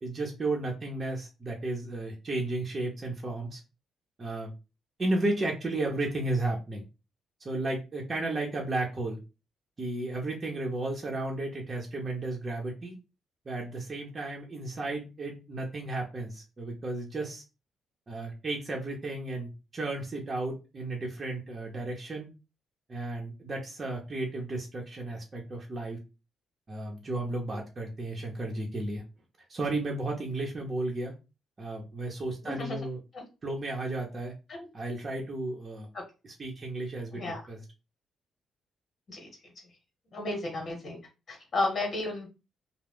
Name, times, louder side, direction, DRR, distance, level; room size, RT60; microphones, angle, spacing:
voice 1, 0.0-3.6 4.2-4.5 5.0-6.8 7.4-9.2 9.8-12.9 13.5-17.4 18.1-22.3 22.9-26.0 26.7-29.0 29.5-31.1 31.6-33.0 33.4-34.3 34.7-35.9 36.2-37.6, right 2 dB, 35° right, -1 dB, 0.7 m, -33 dB
voice 2, 32.4-32.8 33.1-33.2 34.5-34.7 37.1-37.4 39.1-39.3 40.1-41.0 41.3-42.3, left 2 dB, 55° left, 2 dB, 1.1 m, -32 dB
2.4 x 2.1 x 3.4 m, 0.29 s
supercardioid pair, 65°, 0 cm